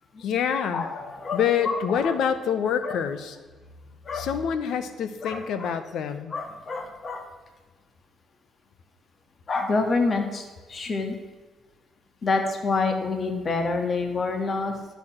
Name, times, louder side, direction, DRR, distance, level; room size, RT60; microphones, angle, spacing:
voice 1, 0.2-0.9 1.3-3.4 4.1-6.3, left 7 dB, 75° left, 11 dB, 0.9 m, -26 dB
voice 2, 0.7-2.2 2.8-3.0 4.1-4.3 5.2-5.7 6.3-7.3 9.5-11.2 12.2-14.7, left 3 dB, 45° left, 5 dB, 1.7 m, -27 dB
11.5 x 7.0 x 5.9 m, 1.3 s
cardioid pair, 90°, 0 cm